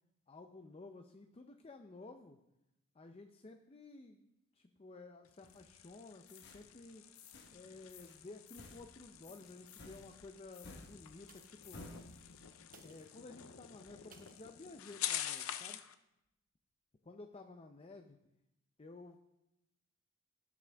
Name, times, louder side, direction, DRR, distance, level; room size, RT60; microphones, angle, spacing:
voice 1, 0.3-2.4 2.9-4.3 4.5-7.1 7.5-11.9 12.8-15.8 17.0-18.2 18.8-19.2, left 3 dB, 25° left, 5 dB, 0.5 m, -54 dB
sound 1, 5.3-16.0, left 11 dB, 75° left, 0.6 m, -47 dB
sound 2, 5.4-5.9 6.3-6.6 7.2-7.6 7.9-8.2 8.5-12.6, left 2 dB, 55° left, 1.2 m, -55 dB
sound 3, 11.2-11.8 12.6-14.6 15.3-15.7 16.2-16.3, right 6 dB, 40° right, 1.0 m, -65 dB
17.5 x 6.1 x 3.4 m, 0.87 s
head